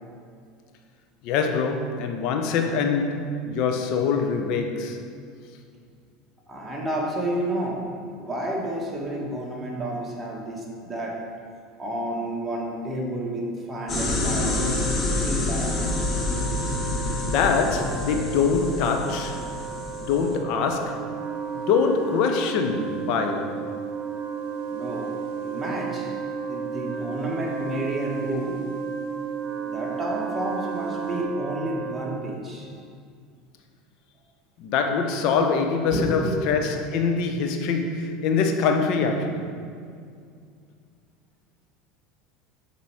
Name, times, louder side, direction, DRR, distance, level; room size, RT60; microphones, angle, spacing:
voice 1, 1.2-5.0 17.2-19.5 20.0-21.1 21.5-23.7 34.6-39.5, left 5 dB, 60° left, 0.6 m, -24 dB
voice 2, 6.5-7.8 8.1-11.2 11.8-14.8 15.2-15.7 24.7-25.1 25.4-26.1 26.5-28.6 29.6-32.7 35.9-36.6, right 1 dB, 15° right, 1.4 m, -30 dB
sound 1, 13.9-20.4, left 2 dB, 35° left, 1.1 m, -27 dB
Wind instrument woodwind instrument, 14.3-32.4, right 5 dB, 35° right, 0.7 m, -36 dB
sound 2, 20.9-31.2, right 7 dB, 70° right, 0.7 m, -35 dB
5.6 x 4.1 x 4.6 m
hypercardioid pair, 90°, 0 cm